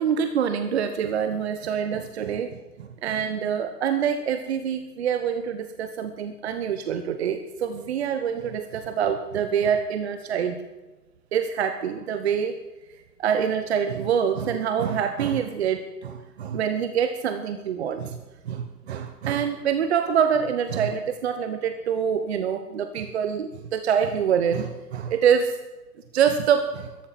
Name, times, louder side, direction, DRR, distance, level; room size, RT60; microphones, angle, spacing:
voice 1, 0.0-10.6 11.3-12.6 13.2-18.2 18.4-25.6 26.1-26.9, right 8 dB, 40° right, 8 dB, 1.1 m, -25 dB
13.5 x 11.5 x 7.3 m, 1.1 s
figure-of-eight pair, 130°, 48 cm